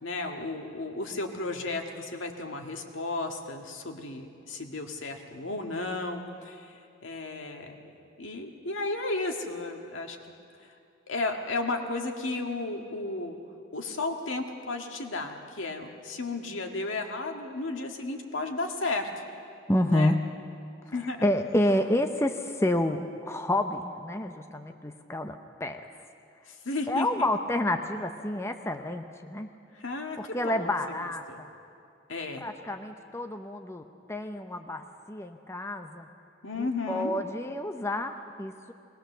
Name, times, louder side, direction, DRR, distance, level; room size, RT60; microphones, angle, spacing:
voice 1, 0.0-7.9 8.2-10.2 11.1-13.4 13.7-19.2 19.9-20.1 20.9-21.2 26.7-27.3 29.7-30.7 31.3-31.4 32.1-32.4 36.4-37.2, left 2 dB, 80° left, 3 dB, 1.8 m, -33 dB
voice 2, 19.7-20.2 21.2-25.8 26.9-29.5 30.2-31.5 32.4-33.8 34.1-36.1 36.6-38.7, left 1 dB, 15° left, 6 dB, 0.7 m, -29 dB
21.5 x 18.5 x 6.8 m, 2.4 s
head